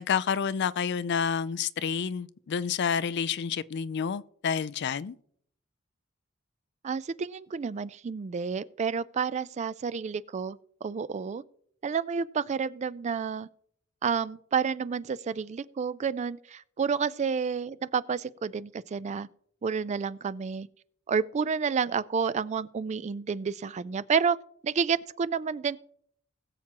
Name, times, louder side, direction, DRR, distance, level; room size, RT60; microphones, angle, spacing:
voice 1, 0.0-5.2, left 7 dB, 55° left, 0.4 m, -29 dB
voice 2, 6.8-11.4 11.8-13.5 14.0-19.3 19.6-20.7 21.1-24.4 24.6-25.8, right 6 dB, 35° right, 0.3 m, -30 dB
20.5 x 7.3 x 2.9 m
head